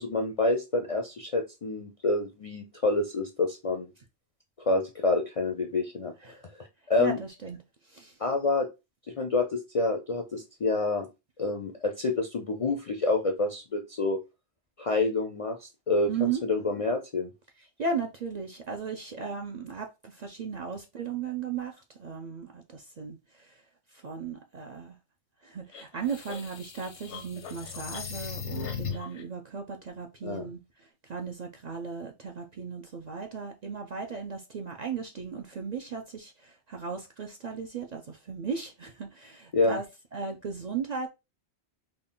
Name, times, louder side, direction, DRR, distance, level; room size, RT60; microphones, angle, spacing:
voice 1, 0.0-3.9 4.6-6.1 6.6-7.2 8.2-8.7 9.2-11.1 11.4-14.2 14.8-17.3 30.2-30.5 39.5-39.8, left 3 dB, 50° left, 0.4 m, -28 dB
voice 2, 7.0-7.6 7.9-8.1 16.1-16.4 17.8-21.7 22.0-23.2 24.0-24.9 25.4-30.6 31.1-39.8 40.1-41.1, right 6 dB, 55° right, 0.5 m, -36 dB
sound 1, 25.7-29.2, left 6 dB, 90° left, 1.0 m, -38 dB
3.7 x 2.2 x 3.7 m
omnidirectional pair, 1.1 m